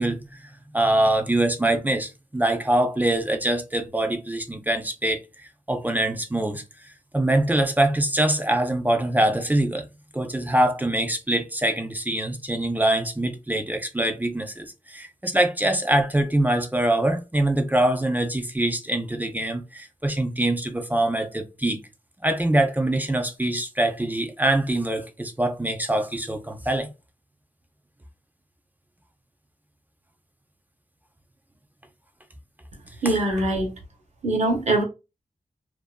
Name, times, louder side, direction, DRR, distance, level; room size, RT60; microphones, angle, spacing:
voice 1, 0.0-5.2 5.7-6.6 7.1-9.9 10.1-21.8 22.2-26.9 33.0-33.5, right 1 dB, 10° right, 0.4 m, -24 dB
voice 2, 33.0-33.7 34.2-34.8, right 2 dB, 55° right, 0.9 m, -22 dB
2.6 x 2.4 x 2.2 m
wide cardioid pair, 90°, 14 cm